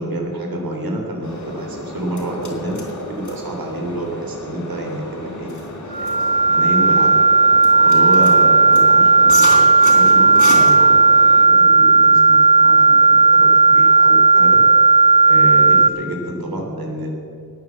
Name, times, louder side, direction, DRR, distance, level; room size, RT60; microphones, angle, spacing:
voice 1, 0.0-2.8 3.1-5.5 6.0-7.1 7.8-11.2 11.6-14.6 15.3-17.1, right 1 dB, 85° right, 1 dB, 3.5 m, -28 dB
sound 1, 1.2-11.5, left 2 dB, 60° left, 3.6 m, -31 dB
sound 2, 5.9-15.9, right 3 dB, 20° right, 0.3 m, -12 dB
18.5 x 9.4 x 7.3 m, 2.6 s
wide cardioid pair, 120°, 35 cm